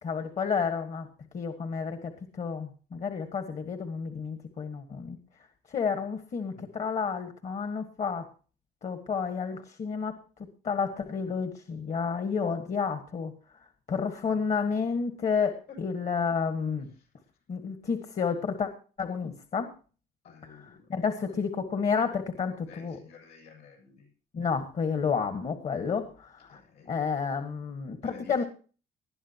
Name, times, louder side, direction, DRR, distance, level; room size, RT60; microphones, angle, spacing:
voice 1, 0.0-1.1 1.3-5.2 5.7-8.3 8.8-10.1 10.6-13.3 13.9-16.9 17.5-18.7 19.0-19.7 20.9-23.0 24.3-26.6 26.9-28.4, left 5 dB, 45° left, 8 dB, 1.6 m, -30 dB
voice 2, 20.2-20.9 21.2-21.4 22.3-24.1 25.2-25.3 26.1-26.2 26.5-27.0 28.0-28.5, left 6 dB, 70° left, 4 dB, 6.8 m, -52 dB
20.0 x 11.5 x 2.9 m, 0.37 s
cardioid pair, 110°, 17 cm